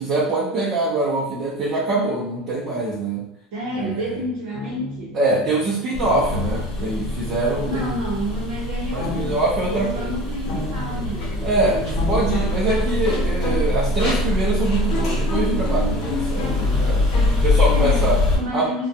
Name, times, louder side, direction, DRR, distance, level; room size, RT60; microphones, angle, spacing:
voice 1, 0.0-3.2 3.7-4.2 5.1-7.9 8.9-10.1 11.4-11.8 12.1-17.1 17.4-18.2 18.5-18.7, right 2 dB, 35° right, -7 dB, 0.6 m, -23 dB
voice 2, 3.5-5.2 7.7-12.0 17.7-18.9, equal, 70° right, -7 dB, 0.7 m, -30 dB
sound 1, 3.6-17.8, left 2 dB, 55° left, 0.7 m, -33 dB
sound 2, 5.9-18.4, left 2 dB, 40° left, 1.1 m, -23 dB
2.4 x 2.2 x 2.7 m, 0.78 s
cardioid pair, 165°, 0 cm